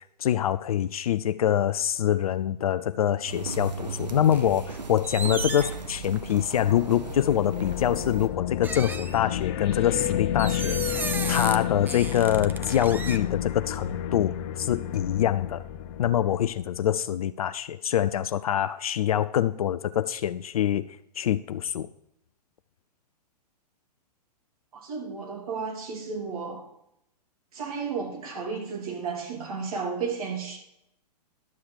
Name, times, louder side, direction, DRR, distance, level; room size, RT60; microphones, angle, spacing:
voice 1, 0.2-15.6 16.0-21.9, left 11 dB, 60° left, 0.4 m, -25 dB
sound 1, 3.3-8.3, right 3 dB, 85° right, 1.1 m, -37 dB
sound 2, 4.3-4.8 5.0-6.5 7.4-7.6 8.6-9.7 10.4-11.6 11.9-13.2, right 4 dB, 10° right, 0.5 m, -35 dB
sound 3, 6.6-16.8, left 10 dB, 45° left, 0.9 m, -31 dB
voice 2, 24.7-26.6 27.5-30.6, right 5 dB, 60° right, 3.4 m, -33 dB
12.0 x 7.1 x 4.7 m
figure-of-eight pair, 110°, 21 cm